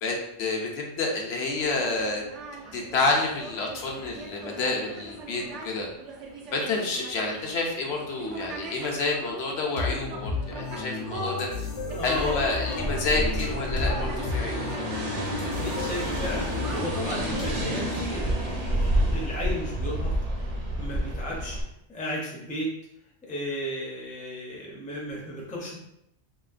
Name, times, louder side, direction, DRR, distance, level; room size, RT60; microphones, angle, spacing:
voice 1, 0.0-2.2 2.7-5.9 6.5-11.7 12.0-14.7, left 3 dB, 70° left, 0 dB, 0.8 m, -29 dB
sound 1, 1.5-17.6, right 2 dB, 80° right, 0.9 m, -41 dB
sound 2, 9.8-17.9, left 4 dB, 85° left, 1.0 m, -33 dB
voice 2, 11.9-12.9 15.4-18.7 19.0-21.6 21.9-22.7 23.2-25.8, equal, 10° left, -3 dB, 0.4 m, -34 dB
sound 3, 12.7-21.6, right 1 dB, 45° right, 0.5 m, -29 dB
3.0 x 2.8 x 2.4 m, 0.78 s
omnidirectional pair, 1.2 m